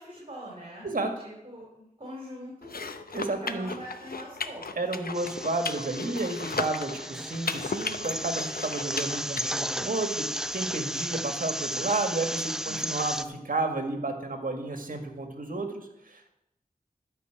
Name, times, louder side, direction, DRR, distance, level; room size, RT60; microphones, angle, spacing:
voice 1, 0.0-2.7 3.3-4.6 6.9-7.3 12.6-12.8, equal, 40° right, -4 dB, 3.8 m, -43 dB
sound 1, 2.6-9.5, left 4 dB, 70° left, 0.7 m, -36 dB
voice 2, 3.1-3.7 4.8-10.3 10.5-16.3, right 2 dB, 60° right, 5 dB, 1.8 m, -31 dB
sound 2, 5.1-13.2, equal, 5° right, 0.5 m, -34 dB
12.5 x 5.5 x 7.9 m, 0.85 s
wide cardioid pair, 70°, 16 cm